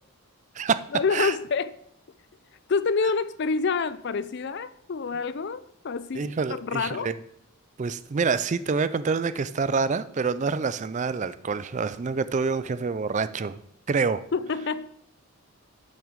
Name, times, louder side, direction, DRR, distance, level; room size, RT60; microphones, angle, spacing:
voice 1, 0.9-1.7 2.7-7.1 14.3-14.9, left 4 dB, 50° left, 0.4 m, -27 dB
voice 2, 6.1-7.2 7.8-13.6 13.9-14.2, right 5 dB, 35° right, 0.3 m, -27 dB
8.7 x 6.3 x 6.2 m
head